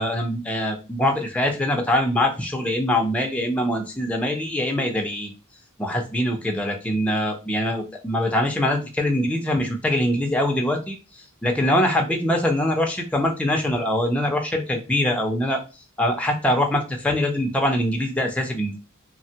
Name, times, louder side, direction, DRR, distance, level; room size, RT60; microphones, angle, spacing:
voice 1, 0.0-5.3 5.8-11.0 11.4-15.6 16.0-18.8, left 1 dB, 5° left, 2 dB, 0.5 m, -23 dB
3.2 x 2.1 x 2.7 m, 0.30 s
head